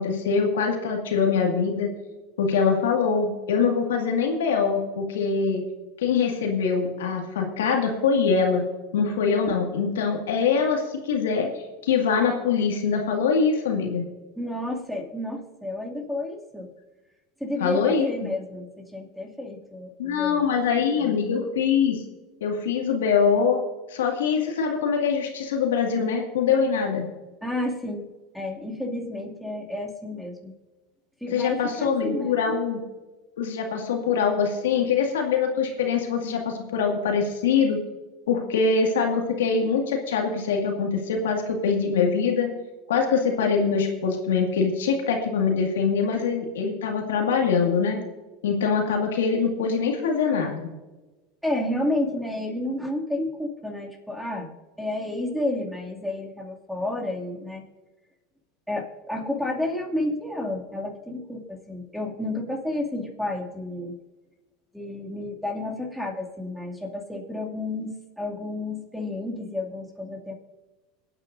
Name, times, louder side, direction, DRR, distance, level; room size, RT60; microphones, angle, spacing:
voice 1, 0.0-1.9 2.4-5.6 6.0-8.6 8.9-11.5 11.8-14.1 17.6-18.1 20.0-22.0 22.4-23.6 23.9-27.1 31.3-32.8 33.4-37.8 38.3-42.5 42.9-48.0 48.4-50.7, left 5 dB, 85° left, 2 dB, 2.0 m, -23 dB
voice 2, 14.4-16.7 17.4-20.5 21.0-21.3 27.4-28.1 28.3-30.5 31.2-32.4 51.4-54.5 54.8-57.6 58.7-63.9 64.7-70.3, left 1 dB, ahead, -1 dB, 2.4 m, -31 dB
25.0 x 8.9 x 2.6 m, 1.2 s
hypercardioid pair, 95°, 0 cm